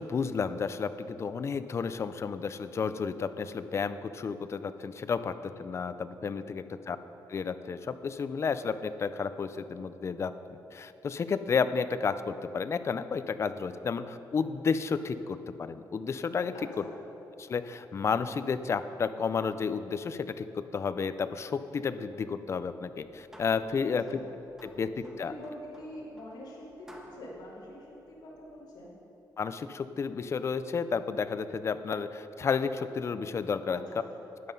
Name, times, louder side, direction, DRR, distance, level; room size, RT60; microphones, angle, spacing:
voice 1, 0.0-7.0 7.3-16.8 17.4-24.2 24.6-25.3 29.4-33.8, left 5 dB, 40° left, 12 dB, 0.5 m, -32 dB
sound 1, 22.9-28.7, equal, 5° right, 1.3 m, -55 dB
voice 2, 25.0-28.9 33.7-34.2, left 1 dB, 65° left, -7 dB, 3.1 m, -45 dB
12.5 x 9.4 x 5.3 m, 3.0 s
cardioid pair, 135°, 8 cm